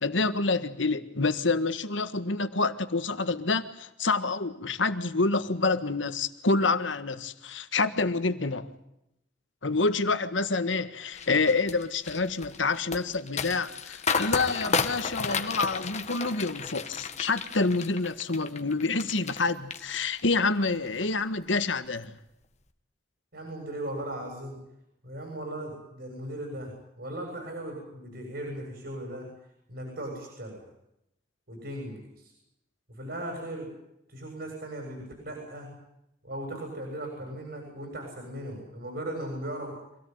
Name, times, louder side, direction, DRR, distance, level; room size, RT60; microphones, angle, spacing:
voice 1, 0.0-8.7 9.6-22.1, left 3 dB, 80° left, 1.6 m, -27 dB
sound 1, 11.1-19.4 19.7-20.4 20.8-21.0, left 5 dB, 35° left, 1.7 m, -32 dB
voice 2, 23.3-24.6 25.0-29.3 29.7-30.6 31.5-32.3 32.9-33.7 34.1-35.7 36.2-39.8, right 1 dB, 55° right, 7.6 m, -37 dB
26.0 x 18.0 x 9.5 m
head